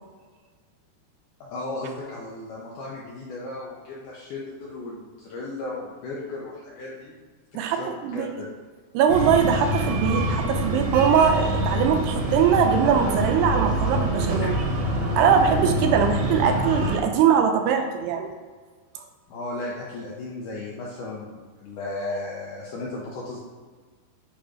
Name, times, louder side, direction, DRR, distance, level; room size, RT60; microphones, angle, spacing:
voice 1, 1.4-7.2 7.6-7.9 8.1-8.5 16.1-16.2 19.3-23.4, left 2 dB, 75° left, -4 dB, 1.9 m, -35 dB
voice 2, 7.5-8.3 8.9-14.6 15.2-18.3, right 7 dB, 90° right, 5 dB, 2.7 m, -21 dB
Breathing, 9.1-17.0, equal, 70° right, 1.9 m, -25 dB
8.7 x 3.1 x 5.0 m, 1.5 s
omnidirectional pair, 4.7 m